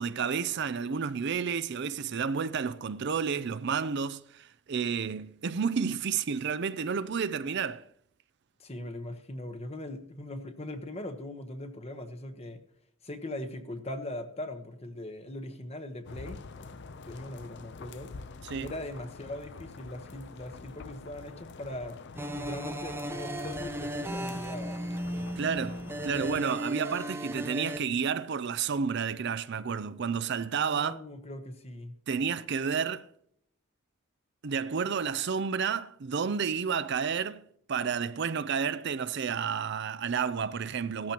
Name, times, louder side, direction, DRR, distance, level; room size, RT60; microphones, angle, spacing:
voice 1, 0.0-7.8 18.5-18.7 25.4-31.0 32.1-33.0 34.4-37.4 37.7-41.1, right 6 dB, 55° right, 0.5 m, -31 dB
voice 2, 8.6-12.6 13.0-16.8 17.0-18.1 18.6-22.0 22.4-24.8 30.5-31.9, left 1 dB, 30° left, 1.1 m, -40 dB
sound 1, 16.0-26.4, left 4 dB, 55° left, 0.6 m, -46 dB
sound 2, 22.1-27.8, right 1 dB, 10° right, 0.7 m, -36 dB
16.5 x 13.5 x 2.9 m
head